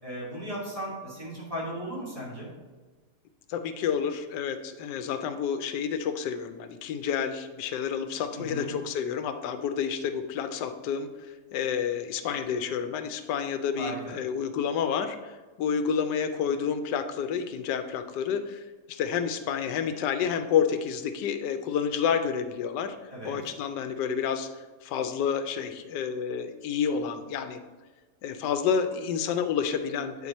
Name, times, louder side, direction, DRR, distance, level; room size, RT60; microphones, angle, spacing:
voice 1, 0.0-2.5 8.4-8.7 13.8-14.1 23.1-23.4, equal, 20° right, -7 dB, 2.3 m, -36 dB
voice 2, 3.5-23.0 23.2-24.5 24.8-27.6 28.2-30.3, left 7 dB, 90° left, 9 dB, 1.2 m, -29 dB
8.7 x 4.4 x 4.1 m, 1.3 s
omnidirectional pair, 1.8 m